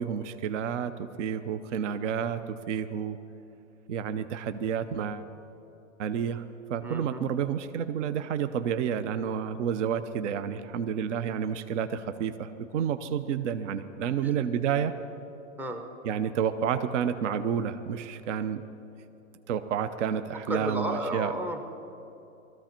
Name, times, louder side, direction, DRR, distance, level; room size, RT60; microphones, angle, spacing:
voice 1, 0.0-3.2 3.9-5.3 6.0-6.4 6.7-14.9 16.0-18.6 19.5-21.3, right 8 dB, 60° right, 11 dB, 0.8 m, -30 dB
voice 2, 6.8-7.2 14.2-14.3 15.6-15.8 20.5-21.8, right 1 dB, 5° right, 5 dB, 0.5 m, -33 dB
20.0 x 14.0 x 4.4 m, 2.8 s
hypercardioid pair, 145°, 41 cm